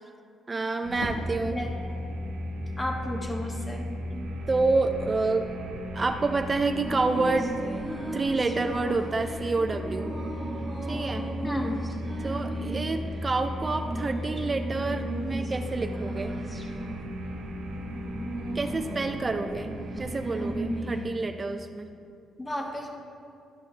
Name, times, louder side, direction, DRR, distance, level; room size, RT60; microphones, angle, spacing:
voice 1, 0.5-1.6 4.1-5.5 5.9-7.6 8.1-10.1 10.9-11.3 12.2-16.3 18.5-19.7 20.0-21.9, right 3 dB, 30° right, 6 dB, 0.4 m, -28 dB
sound 1, 0.8-20.8, equal, 85° right, 1.1 m, -36 dB
Fireworks, 1.0-5.4 5.6-6.4, left 1 dB, 90° left, 1.4 m, -44 dB
voice 2, 2.8-3.8 11.4-11.8 22.4-22.9, left 1 dB, 20° left, 1 dB, 1.3 m, -33 dB
sound 2, 6.8-21.2, right 2 dB, 15° right, 1.4 m, -37 dB
13.0 x 5.3 x 3.3 m, 2.4 s
cardioid pair, 90°, 0 cm